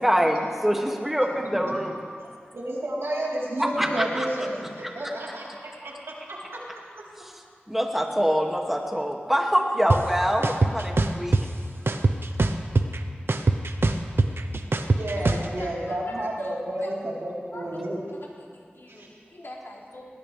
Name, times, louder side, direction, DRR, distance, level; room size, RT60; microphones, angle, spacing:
voice 1, 0.0-2.0 3.8-4.3 7.7-11.3, equal, 5° right, 0 dB, 2.3 m, -24 dB
voice 2, 2.5-5.4 5.8-6.4 15.0-18.0 18.9-19.1, right 1 dB, 80° right, -5 dB, 4.0 m, -31 dB
sound 1, 9.9-10.0 10.4-11.4 11.9-13.0 13.3-15.5, right 3 dB, 65° right, 0.9 m, -21 dB
voice 3, 15.0-16.5 16.8-16.9 17.5-17.8 18.4-20.1, left 1 dB, 65° left, -3 dB, 3.4 m, -43 dB
20.0 x 20.0 x 3.5 m, 2.2 s
wide cardioid pair, 45°, 4 cm